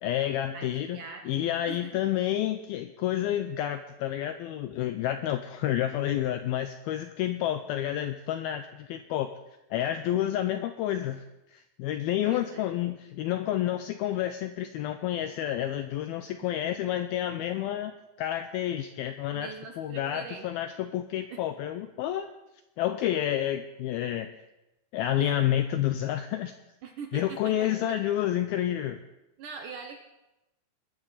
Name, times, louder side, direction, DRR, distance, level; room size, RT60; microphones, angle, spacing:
voice 1, 0.0-9.3 9.7-11.2 11.5-17.9 18.2-22.3 22.8-24.3 24.9-26.5 27.1-29.0, left 12 dB, 85° left, 8 dB, 2.2 m, -29 dB
voice 2, 0.5-1.2 1.7-1.8 12.2-12.7 19.3-20.5 21.3-21.4 25.2-25.4 26.8-27.7 29.4-30.0, right 5 dB, 70° right, 3 dB, 2.1 m, -42 dB
21.0 x 13.5 x 4.1 m, 0.94 s
omnidirectional pair, 5.0 m